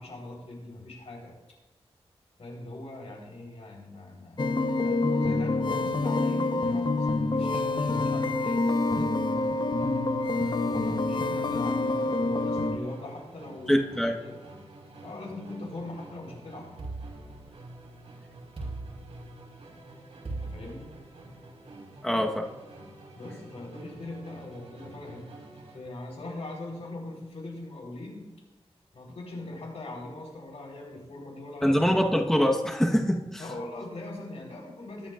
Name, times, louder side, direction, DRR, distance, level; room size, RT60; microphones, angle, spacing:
voice 1, 0.0-1.3 2.4-9.1 10.4-14.4 15.0-16.7 20.4-20.9 23.2-25.3 25.7-28.3 28.9-31.9 33.4-35.1, left 2 dB, 80° left, -1 dB, 4.0 m, -41 dB
sound 1, 4.4-12.8, left 2 dB, 45° left, 1.0 m, -27 dB
Musical instrument, 9.2-25.9, right 2 dB, 90° right, 3.3 m, -49 dB
voice 2, 13.7-14.2 22.0-22.5 31.6-33.4, equal, 5° left, 1 dB, 1.2 m, -24 dB
sound 2, 16.8-17.9 18.6-19.6 20.3-21.4, right 2 dB, 65° right, 4.8 m, -39 dB
22.0 x 11.0 x 2.5 m, 1.1 s
wide cardioid pair, 70°, 11 cm